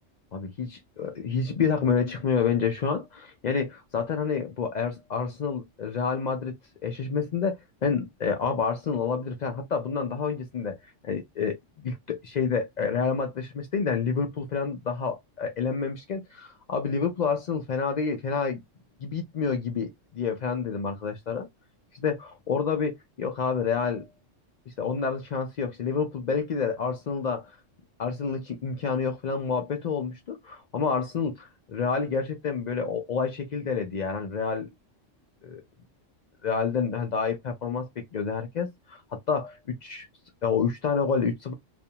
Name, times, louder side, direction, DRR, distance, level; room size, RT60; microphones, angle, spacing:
voice 1, 0.3-6.6 6.8-10.8 11.0-18.6 19.0-21.5 21.9-24.1 24.7-27.5 28.0-34.7 35.4-35.6 36.4-40.1 40.4-41.5, left 5 dB, 65° left, 0.4 m, -28 dB
2.4 x 2.2 x 2.7 m
omnidirectional pair, 1.3 m